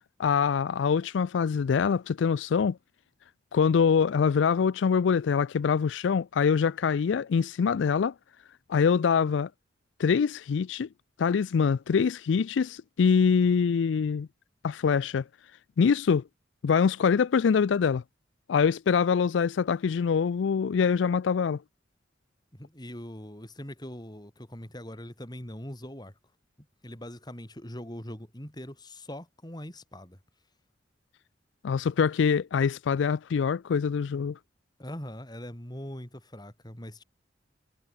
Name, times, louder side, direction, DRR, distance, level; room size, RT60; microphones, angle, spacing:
voice 1, 0.2-2.8 3.5-8.1 8.7-9.5 10.0-10.9 11.2-14.3 14.6-15.2 15.8-16.2 16.6-18.0 18.5-21.6 31.6-34.4, left 6 dB, 85° left, 0.4 m, -24 dB
voice 2, 22.5-26.1 26.8-30.2 34.8-37.0, left 1 dB, 25° left, 3.6 m, -41 dB
head